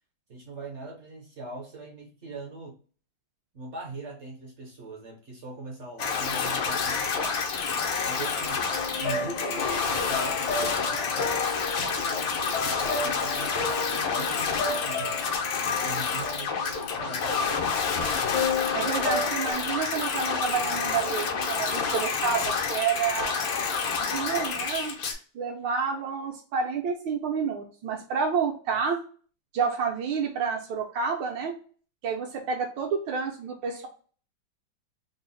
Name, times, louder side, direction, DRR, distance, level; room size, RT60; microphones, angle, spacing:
voice 1, 0.3-2.8 3.5-7.5 8.0-8.7 9.0-11.5 11.8-17.7 28.7-28.8, right 2 dB, 65° right, 0 dB, 0.7 m, -41 dB
sound 1, 6.0-25.1, left 5 dB, 85° left, 1.5 m, -28 dB
sound 2, 8.7-17.6 18.3-19.5, left 3 dB, 70° left, 0.9 m, -34 dB
voice 2, 18.7-23.5 24.0-25.0 25.3-29.0 29.5-31.6 32.0-33.9, right 6 dB, 80° right, 0 dB, 1.3 m, -29 dB
3.8 x 2.0 x 3.7 m, 0.41 s
omnidirectional pair, 2.0 m